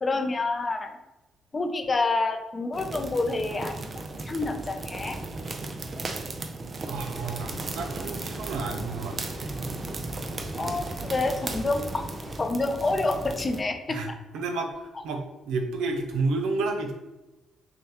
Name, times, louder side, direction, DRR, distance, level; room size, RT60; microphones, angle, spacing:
voice 1, 0.0-0.9 1.5-5.2 10.6-12.1 12.4-14.0, left 3 dB, 30° left, 6 dB, 0.5 m, -28 dB
sound 1, 2.7-13.6, right 3 dB, 40° right, 0.5 m, -36 dB
voice 2, 6.8-9.6 13.9-16.9, right 3 dB, 90° right, 4 dB, 0.6 m, -31 dB
sound 2, 7.1-12.4, equal, 5° right, 1.1 m, -42 dB
6.3 x 2.2 x 2.9 m, 1.0 s
cardioid pair, 90°, 0 cm